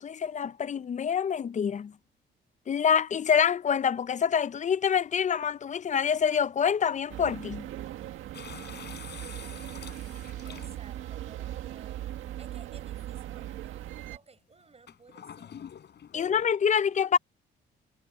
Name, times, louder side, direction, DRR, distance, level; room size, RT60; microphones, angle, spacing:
voice 1, 0.0-1.9 2.7-7.7 16.1-17.2, left 7 dB, 40° left, 0.6 m, -26 dB
sound 1, 7.1-14.2, right 12 dB, 85° right, 1.7 m, -39 dB
sound 2, 8.3-11.1 11.9-12.0 14.9-16.5, left 8 dB, 60° left, 5.4 m, -46 dB
voice 2, 10.3-15.6 16.1-17.2, right 4 dB, 30° right, 5.6 m, -56 dB
cardioid pair, 90°, 20 cm